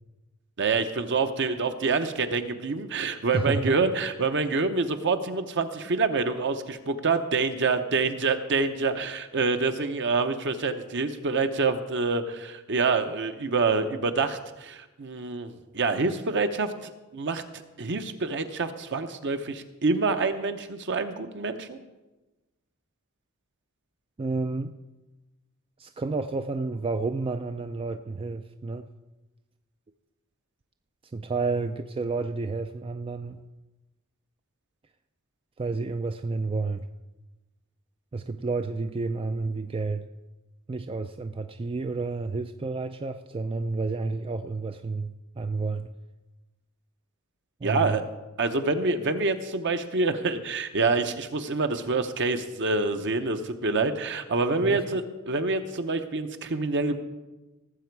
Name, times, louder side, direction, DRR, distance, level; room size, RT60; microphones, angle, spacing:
voice 1, 0.6-17.4 17.8-21.8 47.6-48.0 48.4-57.0, right 3 dB, 55° right, 8 dB, 0.9 m, -27 dB
voice 2, 3.3-3.8 24.2-24.7 25.8-28.9 31.1-33.4 35.6-36.9 38.1-40.1 40.7-45.9 47.6-48.0 54.6-54.9, right 3 dB, 25° right, 8 dB, 0.3 m, -30 dB
18.0 x 7.6 x 4.7 m, 1.1 s
head